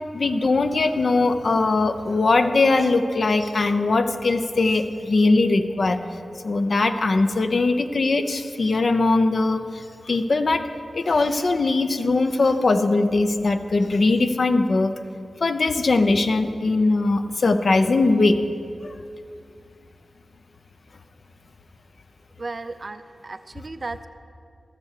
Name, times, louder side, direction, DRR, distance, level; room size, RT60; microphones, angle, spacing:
voice 1, 0.1-6.0 6.4-10.7 10.9-14.9 15.4-18.4 18.8-18.9, left 3 dB, 65° left, 8 dB, 0.6 m, -20 dB
voice 2, 22.4-24.1, right 3 dB, 50° right, 11 dB, 0.5 m, -35 dB
14.5 x 6.9 x 6.6 m, 2.5 s
cardioid pair, 60°, 0 cm